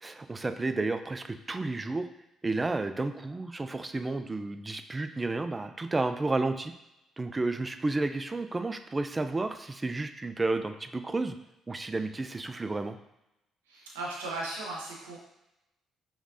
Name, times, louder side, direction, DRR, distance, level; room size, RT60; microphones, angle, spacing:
voice 1, 0.0-2.1 2.4-6.7 7.2-11.4 11.7-13.0, right 2 dB, 25° right, 9 dB, 0.4 m, -31 dB
voice 2, 13.7-15.2, right 2 dB, 90° right, -3 dB, 0.8 m, -37 dB
5.1 x 3.1 x 2.5 m, 0.90 s
hypercardioid pair, 50°, 0 cm